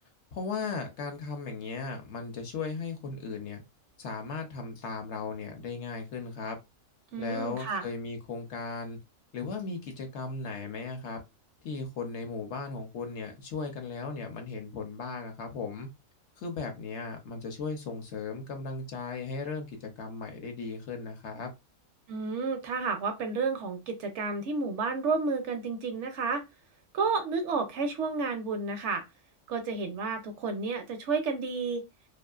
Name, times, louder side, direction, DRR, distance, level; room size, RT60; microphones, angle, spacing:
voice 1, 0.3-3.6 4.0-6.6 7.2-9.0 9.3-11.2 11.6-15.9 16.4-21.5, left 4 dB, 65° left, 0.8 m, -37 dB
voice 2, 7.1-7.8 22.1-26.4 26.9-29.0 29.5-31.8, right 4 dB, 65° right, 0.8 m, -31 dB
2.6 x 2.4 x 2.3 m
omnidirectional pair, 1.4 m